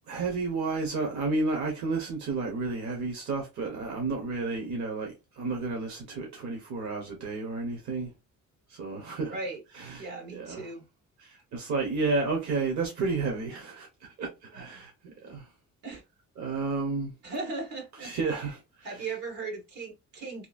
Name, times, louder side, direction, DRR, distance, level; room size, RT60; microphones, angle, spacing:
voice 1, 0.1-8.1 8.7-9.4 9.8-10.7 11.2-15.4 16.4-17.1 18.0-18.6, right 3 dB, 70° right, 1.0 m, -31 dB
voice 2, 9.3-9.6 10.0-10.9 14.5-14.8 15.8-16.0 17.2-18.5 18.8-20.5, right 3 dB, 85° right, 1.3 m, -38 dB
2.9 x 2.4 x 2.4 m
cardioid pair, 90°, 30 cm